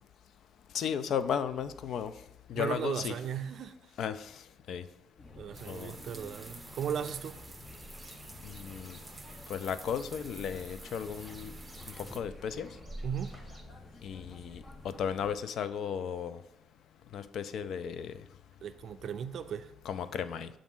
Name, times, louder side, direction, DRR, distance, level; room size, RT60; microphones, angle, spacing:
voice 1, 0.7-2.1 2.5-3.2 4.0-4.4 4.7-4.8 5.7-5.9 8.4-9.0 9.5-11.5 12.0-12.7 14.0-16.4 17.1-18.1 19.8-20.5, left 7 dB, 70° left, 0.3 m, -35 dB
voice 2, 2.5-3.7 5.4-7.4 13.0-13.3 18.6-19.7, right 8 dB, 65° right, 0.4 m, -36 dB
sound 1, 5.2-15.4, left 2 dB, 40° left, 0.8 m, -51 dB
sound 2, 5.5-12.2, right 2 dB, 20° right, 0.6 m, -50 dB
sound 3, 7.0-13.6, right 1 dB, ahead, 1.0 m, -50 dB
6.9 x 2.5 x 5.4 m
cardioid pair, 90°, 0 cm